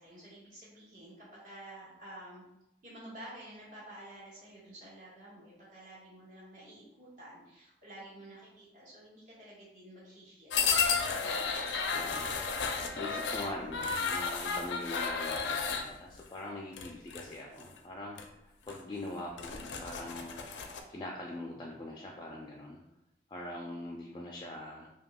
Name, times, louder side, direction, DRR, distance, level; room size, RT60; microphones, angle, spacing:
voice 1, 0.0-2.5 2.8-11.8, right 1 dB, 50° right, -8 dB, 1.4 m, -51 dB
sound 1, 10.5-15.9 16.7-17.2 17.6-17.8 18.2-18.3 18.7-18.8 19.2-20.8, left 5 dB, 90° left, 0.4 m, -33 dB
voice 2, 11.9-20.3 20.9-22.8 23.3-24.9, left 1 dB, 25° left, -1 dB, 0.3 m, -43 dB
5.5 x 2.3 x 2.2 m, 0.87 s
head